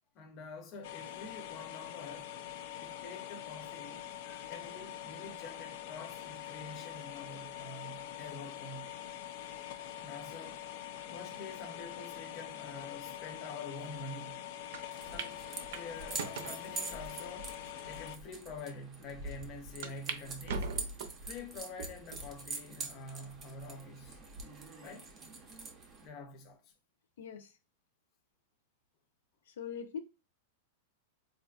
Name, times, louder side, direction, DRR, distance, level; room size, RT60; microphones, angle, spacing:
voice 1, 0.1-2.3 2.8-8.9 10.0-10.6 11.1-14.5 15.0-17.6 17.8-20.8 21.2-24.2 24.8-25.1 26.0-26.7, left 3 dB, 30° left, 0.7 m, -47 dB
sound 1, 0.8-18.2, left 11 dB, 45° left, 0.3 m, -44 dB
sound 2, 14.7-14.8 15.2-15.3 15.7-16.6 17.3-17.4 18.1-18.2 18.5-18.6 19.8-20.2 20.5-21.2 21.8-22.2 22.8-22.9 24.0-24.4, right 4 dB, 65° right, 0.6 m, -40 dB
sound 3, 14.9-26.1, right 3 dB, 20° right, 0.6 m, -45 dB
voice 2, 27.2-27.5 29.5-30.0, left 7 dB, 85° left, 0.6 m, -41 dB
4.1 x 2.4 x 2.4 m
supercardioid pair, 175°, 0 cm